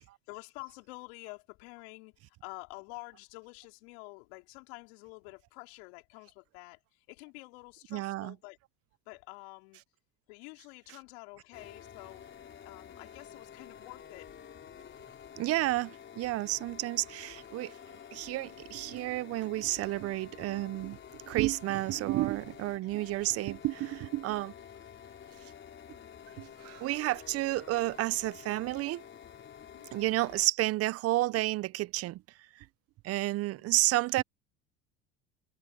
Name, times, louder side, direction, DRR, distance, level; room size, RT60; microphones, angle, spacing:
voice 1, 0.0-8.6 9.1-9.8 10.3-12.3 12.6-14.3 29.6-29.9 33.1-33.3 33.5-33.6, left 29 dB, 75° left, 4.5 m, -49 dB
voice 2, 7.9-8.3 15.4-17.7 18.1-21.0 21.3-24.5 26.4-29.0 29.9-32.2 33.0-34.2, right 17 dB, 50° right, 0.7 m, -31 dB
sound 1, 11.5-30.5, left 8 dB, 35° left, 4.3 m, -50 dB
open air
hypercardioid pair, 80°, 31 cm